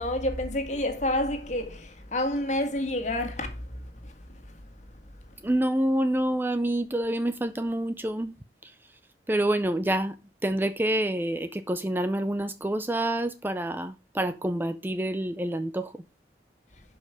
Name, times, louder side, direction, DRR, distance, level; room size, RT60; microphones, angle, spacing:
voice 1, 0.0-4.1, left 1 dB, 40° left, 1.9 m, -29 dB
voice 2, 5.4-8.3 8.6-8.7 9.3-10.2 10.4-16.0, right 1 dB, 10° right, 0.5 m, -27 dB
11.5 x 5.4 x 4.9 m
head